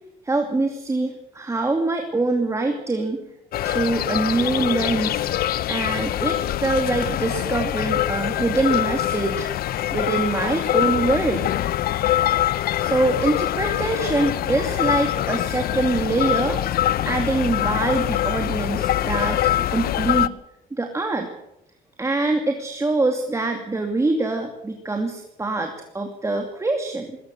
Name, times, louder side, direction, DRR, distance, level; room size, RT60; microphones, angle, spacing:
voice 1, 0.2-3.2 3.6-5.3 5.7-9.5 9.9-11.4 12.4-19.4 19.7-20.3 20.7-21.3 22.0-27.2, right 2 dB, 15° right, 3 dB, 2.6 m, -24 dB
sound 1, 3.5-20.3, left 12 dB, 60° left, 0.8 m, -24 dB
21.0 x 18.5 x 6.6 m, 0.83 s
cardioid pair, 110°, 17 cm